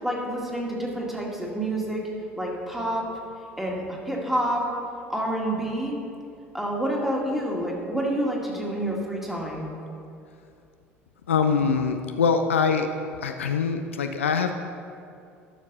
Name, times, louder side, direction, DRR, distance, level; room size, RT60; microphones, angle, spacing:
voice 1, 0.0-2.0 2.3-3.1 3.6-4.7 5.1-5.9 6.5-9.7, right 1 dB, 5° right, -2 dB, 2.1 m, -28 dB
voice 2, 11.3-12.9 13.2-14.5, left 6 dB, 75° left, 6 dB, 0.4 m, -23 dB
12.5 x 6.5 x 4.1 m, 2.5 s
figure-of-eight pair, 65°, 7 cm